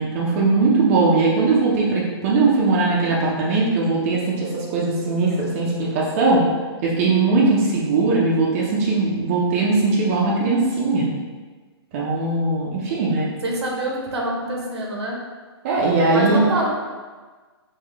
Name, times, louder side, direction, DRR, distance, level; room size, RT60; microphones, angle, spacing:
voice 1, 0.0-6.4 6.8-11.1 11.9-13.3 15.6-16.4, right 3 dB, 35° right, -5 dB, 0.6 m, -20 dB
voice 2, 13.4-15.2 16.1-16.7, right 1 dB, 75° right, -2 dB, 1.0 m, -25 dB
3.6 x 2.3 x 3.5 m, 1.4 s
hypercardioid pair, 155°, 14 cm